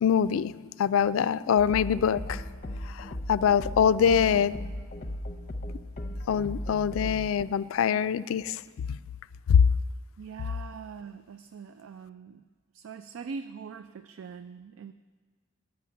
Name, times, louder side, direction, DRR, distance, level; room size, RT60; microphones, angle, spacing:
voice 1, 0.0-0.5 0.8-2.4 2.8-4.6 6.3-9.0 9.5-9.7, left 7 dB, 80° left, 16 dB, 0.3 m, -24 dB
sound 1, 1.6-7.4, left 1 dB, 40° left, 0.7 m, -37 dB
voice 2, 10.2-12.4 12.7-14.9, right 5 dB, 75° right, 11 dB, 0.4 m, -42 dB
10.5 x 6.0 x 8.5 m, 1.5 s
head